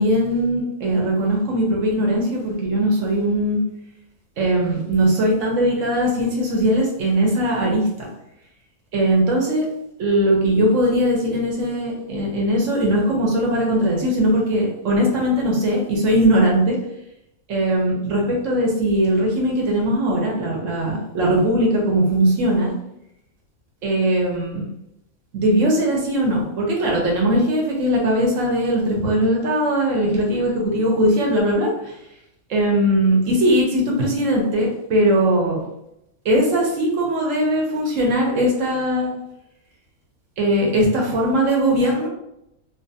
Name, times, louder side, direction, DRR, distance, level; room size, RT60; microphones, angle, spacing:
voice 1, 0.0-3.6 4.4-8.1 8.9-9.6 10.0-16.8 17.5-22.7 23.8-24.6 25.3-31.9 32.5-35.6 36.2-39.1 40.4-42.1, right 1 dB, 65° right, -1 dB, 1.0 m, -20 dB
2.5 x 2.4 x 2.6 m, 0.82 s
omnidirectional pair, 1.5 m